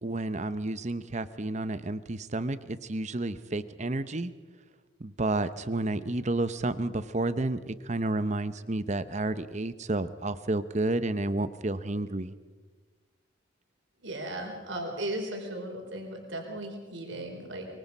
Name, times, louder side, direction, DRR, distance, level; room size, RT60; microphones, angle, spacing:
voice 1, 0.0-4.3 5.0-12.3, right 2 dB, 35° right, 13 dB, 0.8 m, -31 dB
voice 2, 14.0-17.7, right 1 dB, 65° right, 2 dB, 4.4 m, -36 dB
24.5 x 23.0 x 5.5 m, 1.4 s
head